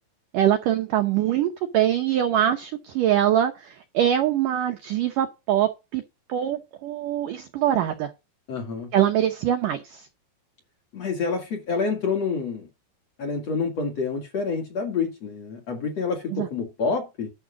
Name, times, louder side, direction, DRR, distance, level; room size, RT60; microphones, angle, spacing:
voice 1, 0.3-6.0 6.3-8.1 8.9-10.1 16.3-16.5, right 11 dB, 85° right, 1.8 m, -23 dB
voice 2, 8.5-8.9 10.9-12.7 13.2-17.3, left 4 dB, 45° left, 2.4 m, -28 dB
11.5 x 6.4 x 5.0 m
omnidirectional pair, 5.2 m